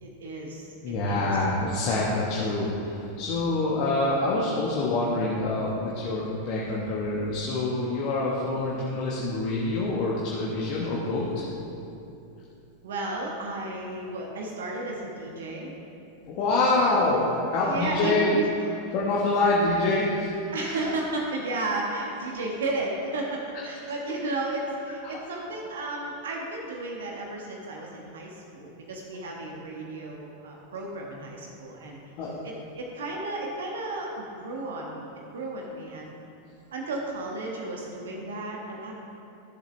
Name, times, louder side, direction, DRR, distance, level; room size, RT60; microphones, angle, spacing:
voice 1, 0.0-1.3 12.8-15.7 16.8-17.1 17.6-18.4 20.5-32.0 32.4-35.1 35.3-36.2 36.7-38.9, right 2 dB, 60° right, -1 dB, 1.4 m, -33 dB
voice 2, 0.8-11.4 16.3-17.2 17.5-18.3 18.9-20.5 25.0-25.2 32.2-32.4, left 2 dB, 40° left, -5 dB, 1.4 m, -26 dB
14.0 x 7.4 x 3.4 m, 2.8 s
figure-of-eight pair, 90°, 0 cm